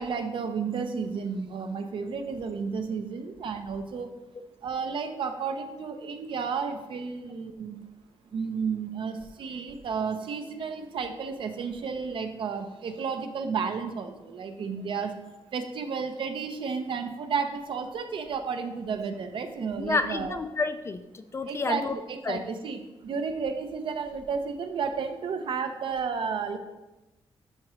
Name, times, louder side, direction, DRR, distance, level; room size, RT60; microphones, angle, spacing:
voice 1, 0.0-4.1 4.6-7.9 8.3-15.2 15.5-20.4 21.5-26.6, right 5 dB, 60° right, 7 dB, 0.7 m, -32 dB
voice 2, 19.8-22.0 22.2-22.4, left 4 dB, 30° left, 10 dB, 0.3 m, -30 dB
11.0 x 4.9 x 3.1 m, 1.0 s
wide cardioid pair, 165°, 10 cm